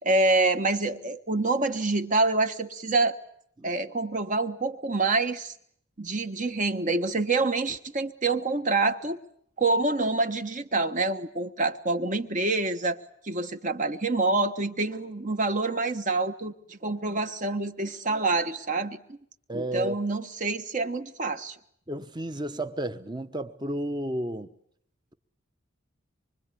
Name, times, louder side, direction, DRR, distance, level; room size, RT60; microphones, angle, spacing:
voice 1, 0.0-3.2 3.6-5.5 6.0-9.2 9.6-19.2 19.5-21.6, right 3 dB, 35° right, 1.3 m, -27 dB
voice 2, 19.5-20.0 21.9-24.5, right 1 dB, 20° right, 1.1 m, -32 dB
25.5 x 24.5 x 8.5 m
head